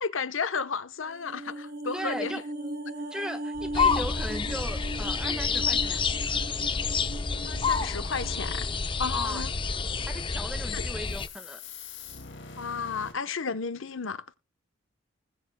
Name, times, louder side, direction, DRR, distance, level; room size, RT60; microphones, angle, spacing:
voice 1, 0.0-2.3 7.4-8.7 9.0-9.5 10.7-10.9 12.6-14.2, left 5 dB, 80° left, 1.0 m, -32 dB
sound 1, 1.0-9.4 9.7-9.9, right 1 dB, 50° right, 6.1 m, -39 dB
voice 2, 1.9-2.4 3.1-6.0 9.1-9.5 10.0-11.6, equal, 5° right, 1.4 m, -37 dB
sound 2, 3.5-13.1, left 2 dB, 65° left, 2.2 m, -44 dB
sound 3, 3.7-11.3, left 5 dB, 25° left, 0.7 m, -29 dB
20.0 x 6.9 x 2.2 m
head